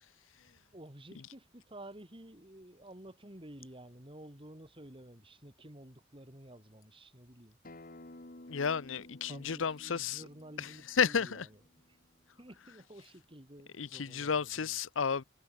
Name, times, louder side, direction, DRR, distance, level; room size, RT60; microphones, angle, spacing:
voice 1, 0.7-7.6 9.3-11.6 11.9-12.0 12.4-14.8, right 1 dB, 25° right, 5.6 m, -52 dB
Acoustic guitar, 7.6-12.8, left 1 dB, 45° left, 2.0 m, -55 dB
voice 2, 8.5-10.2 10.6-10.7 11.0-11.4 13.8-15.2, left 6 dB, 85° left, 0.7 m, -32 dB
head